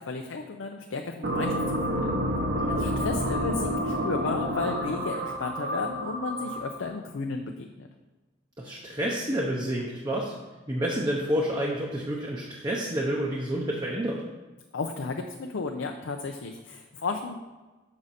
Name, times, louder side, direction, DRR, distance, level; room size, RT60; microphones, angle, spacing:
voice 1, 0.1-1.6 1.9-2.1 2.8-7.9 14.7-17.3, left 4 dB, 75° left, 4 dB, 0.5 m, -33 dB
sound 1, 1.2-6.9, equal, 55° right, 0.9 m, -29 dB
voice 2, 2.6-2.9 8.6-10.3 10.7-14.2, equal, 20° right, -2 dB, 0.7 m, -29 dB
6.4 x 6.1 x 4.1 m, 1.2 s
head